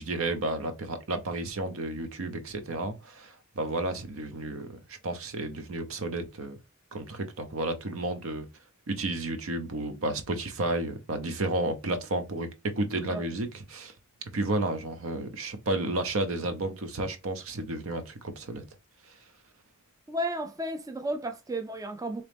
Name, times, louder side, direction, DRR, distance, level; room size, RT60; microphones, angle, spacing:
voice 1, 0.0-6.6 6.9-8.5 8.9-13.9 14.3-18.6, right 2 dB, 70° right, 0.7 m, -32 dB
voice 2, 20.1-22.3, right 1 dB, 15° right, 0.4 m, -33 dB
4.1 x 3.0 x 3.3 m
head